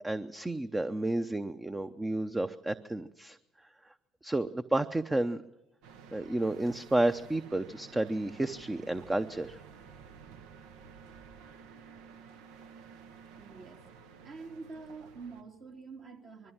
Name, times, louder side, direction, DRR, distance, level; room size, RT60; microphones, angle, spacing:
voice 1, 0.0-3.4 4.2-5.4 6.1-9.6, right 1 dB, 15° right, 10 dB, 0.7 m, -31 dB
sound 1, 5.8-15.4, right 6 dB, 75° right, 1.1 m, -52 dB
voice 2, 13.4-13.8 14.2-16.5, right 4 dB, 50° right, 1 dB, 3.2 m, -46 dB
21.5 x 14.0 x 8.8 m, 0.94 s
hypercardioid pair, 65°, 0 cm